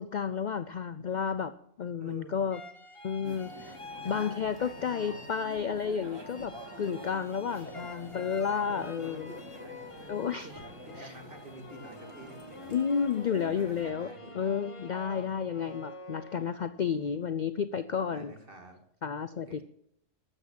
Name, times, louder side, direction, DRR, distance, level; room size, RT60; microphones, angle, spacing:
voice 1, 0.0-1.5 1.8-2.6 3.0-3.7 4.0-9.3 10.1-10.5 11.0-11.1 12.7-14.1 14.3-18.3 19.0-19.6, left 7 dB, 50° left, 12 dB, 0.5 m, -31 dB
voice 2, 2.0-2.5 4.0-5.3 7.7-7.9 8.2-10.6 10.8-12.8 13.4-14.4 15.1-15.4 18.1-18.8 19.5-19.6, right 2 dB, 45° right, 4 dB, 2.2 m, -49 dB
sound 1, 2.5-5.9 6.3-16.9, left 3 dB, 25° left, 1.1 m, -48 dB
sound 2, 3.2-13.8, equal, 20° right, 2.1 m, -47 dB
13.0 x 8.2 x 7.4 m, 0.75 s
omnidirectional pair, 1.3 m